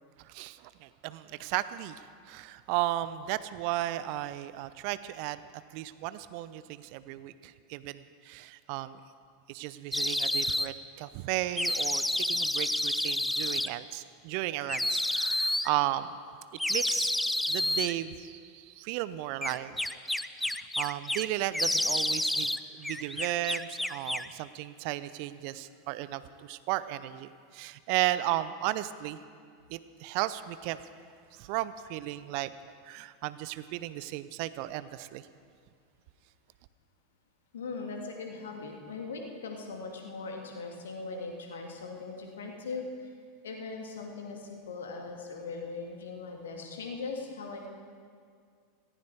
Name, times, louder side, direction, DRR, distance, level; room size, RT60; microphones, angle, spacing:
voice 1, 0.2-5.4 5.7-9.0 9.5-16.1 16.7-17.1 17.5-19.8 20.4-29.2 29.7-30.8 31.3-32.5 32.8-35.2, right 15 dB, 50° right, 15 dB, 0.6 m, -34 dB
sound 1, 9.9-10.7 11.6-13.7 14.7-15.7 16.6-17.9 19.4-21.3 21.5-22.6 22.8-24.3, left 1 dB, 5° left, 0.5 m, -29 dB
voice 2, 37.5-43.1 43.4-47.7, left 4 dB, 70° left, 2 dB, 2.2 m, -40 dB
18.0 x 15.0 x 4.7 m, 2.1 s
figure-of-eight pair, 85°, 0 cm